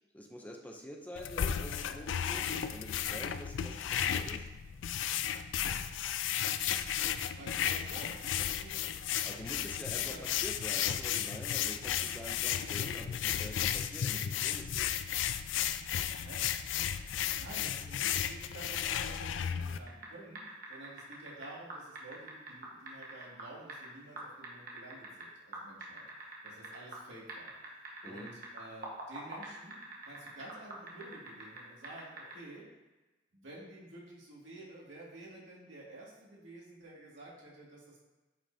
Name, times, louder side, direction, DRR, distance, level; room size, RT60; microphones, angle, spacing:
voice 1, 0.1-4.5 9.2-14.9 28.0-28.3, equal, 10° left, 2 dB, 0.5 m, -47 dB
sound 1, 1.2-19.8, left 9 dB, 85° left, 0.4 m, -34 dB
voice 2, 7.3-9.4 9.7-10.4 16.1-16.8 17.4-20.4 20.7-26.0 26.4-27.5 28.0-29.8 30.0-32.6 33.3-38.0, right 1 dB, 85° right, -5 dB, 2.2 m, -51 dB
sound 2, 19.9-20.1 20.4-23.9 24.2-25.2 25.5-27.0 27.3-31.6 31.8-32.3, right 3 dB, 50° right, 1.3 m, -44 dB
8.7 x 5.3 x 2.7 m, 1.1 s
head